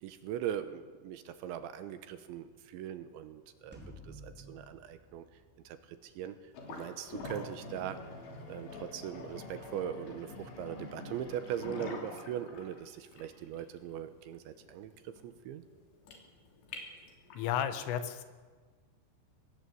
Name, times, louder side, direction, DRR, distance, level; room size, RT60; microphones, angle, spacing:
voice 1, 0.0-3.8 4.0-5.3 5.6-6.4 6.7-8.0 8.5-15.6, right 10 dB, 75° right, 10 dB, 3.2 m, -40 dB
sound 1, 3.7-6.3, equal, ahead, 4.0 m, -52 dB
sound 2, 6.5-17.5, left 3 dB, 65° left, 5.1 m, -46 dB
voice 2, 17.4-18.2, left 9 dB, 85° left, 9 dB, 4.1 m, -33 dB
24.0 x 20.0 x 7.9 m, 1.4 s
omnidirectional pair, 5.7 m